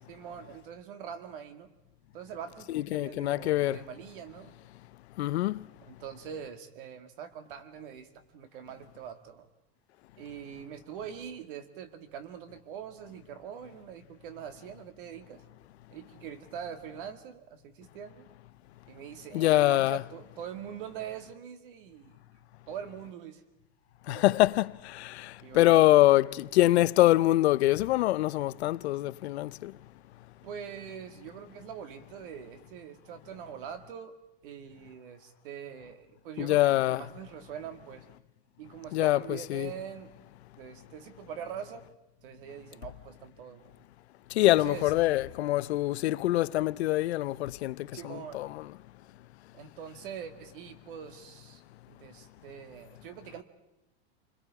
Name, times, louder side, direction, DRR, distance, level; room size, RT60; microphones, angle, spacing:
voice 1, 0.1-1.7 2.1-4.5 5.8-9.5 10.2-15.4 15.9-18.3 18.9-22.2 22.7-23.4 24.1-24.4 25.4-25.9 30.4-34.2 34.4-38.0 38.6-40.1 40.6-41.8 42.2-43.7 44.5-44.9 47.9-48.4 49.5-51.6 51.9-53.4, right 8 dB, 55° right, 2.1 m, -43 dB
voice 2, 2.7-3.8 5.2-5.6 19.3-20.0 24.1-29.7 36.4-37.0 38.9-39.7 44.3-48.7, left 16 dB, 90° left, 0.7 m, -25 dB
29.5 x 21.5 x 4.8 m
supercardioid pair, 180°, 31 cm